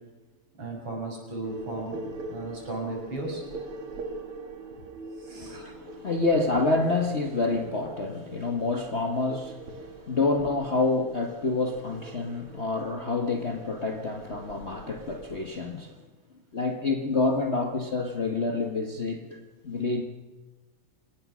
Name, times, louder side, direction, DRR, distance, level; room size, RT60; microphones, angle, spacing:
voice 1, 0.5-2.0 2.3-3.4 5.2-5.6, right 2 dB, 65° right, 7.2 m, -35 dB
sound 1, 1.4-15.4, right 3 dB, 80° right, 2.8 m, -43 dB
voice 2, 5.4-16.0 16.5-20.0, left 3 dB, 35° left, 1.4 m, -28 dB
26.0 x 20.0 x 6.3 m
omnidirectional pair, 2.4 m